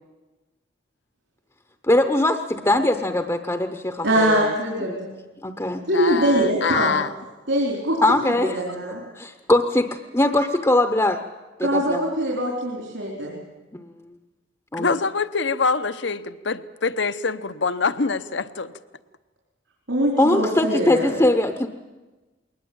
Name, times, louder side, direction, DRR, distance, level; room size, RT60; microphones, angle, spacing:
voice 1, 1.9-4.5 4.9-5.0 5.4-5.8 8.0-8.6 9.1-11.2 11.6-12.0 13.7-13.9 14.7-14.9 20.2-21.7, left 1 dB, 15° left, 6 dB, 0.8 m, -21 dB
voice 2, 4.0-5.1 5.9-7.0 7.5-8.0 8.4-9.0 11.6-13.4 19.9-21.2, right 1 dB, 70° right, -2 dB, 4.2 m, -23 dB
voice 3, 5.9-7.1 14.8-18.7, left 4 dB, 65° left, 12 dB, 0.9 m, -25 dB
21.0 x 19.5 x 8.8 m, 1.2 s
head